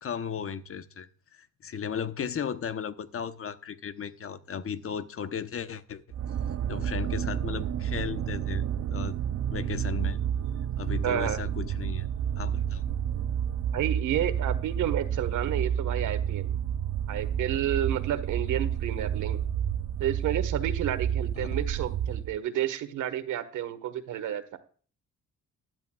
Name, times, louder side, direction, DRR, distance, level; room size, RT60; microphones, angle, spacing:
voice 1, 0.0-6.0 6.7-9.1 9.5-10.2 10.8-12.1 12.4-12.8 21.4-21.6, left 7 dB, 45° left, 11 dB, 1.0 m, -35 dB
sound 1, 6.1-22.4, right 9 dB, 50° right, 0.6 m, -30 dB
voice 2, 11.0-11.4 13.7-16.6 17.1-19.4 20.0-24.6, right 11 dB, 80° right, 11 dB, 1.5 m, -30 dB
15.0 x 11.0 x 2.4 m, 0.43 s
cardioid pair, 90°, 30 cm